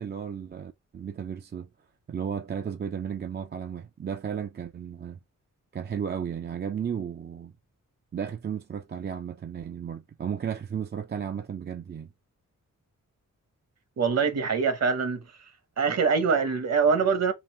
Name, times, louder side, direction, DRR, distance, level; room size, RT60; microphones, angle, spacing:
voice 1, 0.0-1.7 2.1-5.2 5.7-7.5 8.1-12.1, right 7 dB, 35° right, 0.4 m, -34 dB
voice 2, 14.0-15.2 15.8-17.3, right 5 dB, 55° right, 1.0 m, -24 dB
3.9 x 2.4 x 3.5 m
cardioid pair, 90°, 32 cm